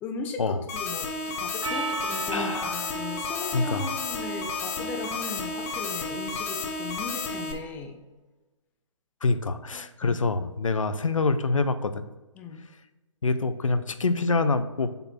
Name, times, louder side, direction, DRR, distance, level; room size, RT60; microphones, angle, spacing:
voice 1, 0.0-1.1 1.4-8.0 10.0-10.2 12.4-12.6, left 4 dB, 10° left, 4 dB, 0.4 m, -37 dB
sound 1, 0.7-7.5, left 3 dB, 30° left, 0.9 m, -32 dB
Percussion, 1.6-6.2, right 4 dB, 65° right, 1.0 m, -38 dB
voice 2, 2.3-2.7 3.5-3.9 9.2-12.0 13.2-14.9, left 3 dB, 75° left, 11 dB, 0.6 m, -26 dB
6.9 x 4.0 x 4.2 m, 1.1 s
figure-of-eight pair, 140°, 17 cm